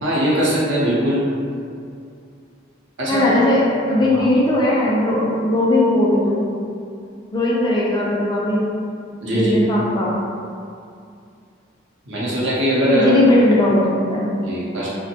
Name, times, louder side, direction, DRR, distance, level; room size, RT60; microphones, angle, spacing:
voice 1, 0.0-1.2 3.0-3.4 4.1-4.3 9.2-9.5 12.1-13.1 14.4-14.9, equal, 65° right, -7 dB, 0.7 m, -20 dB
voice 2, 3.1-6.4 7.3-8.6 9.3-10.1 12.9-14.3, left 1 dB, 20° left, -5 dB, 0.3 m, -18 dB
2.6 x 2.1 x 2.7 m, 2.4 s
head